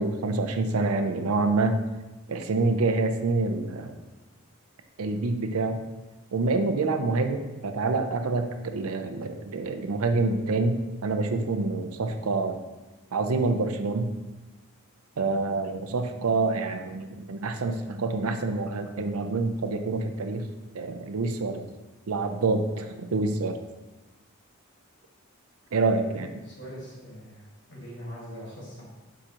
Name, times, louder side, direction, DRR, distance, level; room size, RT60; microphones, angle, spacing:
voice 1, 0.0-1.8 2.3-4.0 5.0-5.8 6.3-12.7 13.1-14.1 15.2-20.5 20.7-21.7 22.1-23.6 25.7-26.3, right 3 dB, 80° right, 7 dB, 0.5 m, -27 dB
voice 2, 26.1-28.8, equal, 50° left, -5 dB, 1.4 m, -42 dB
7.5 x 4.9 x 2.9 m, 1.1 s
head